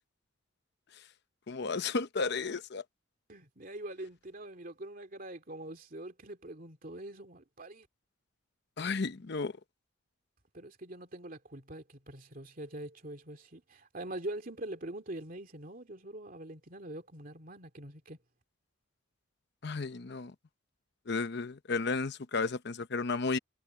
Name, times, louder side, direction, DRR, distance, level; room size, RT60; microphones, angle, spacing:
voice 1, 1.5-2.8 8.8-9.5 19.6-20.3 21.1-23.4, left 4 dB, 55° left, 0.7 m, -33 dB
voice 2, 3.3-7.9 10.5-18.2, right 1 dB, 45° right, 2.6 m, -44 dB
head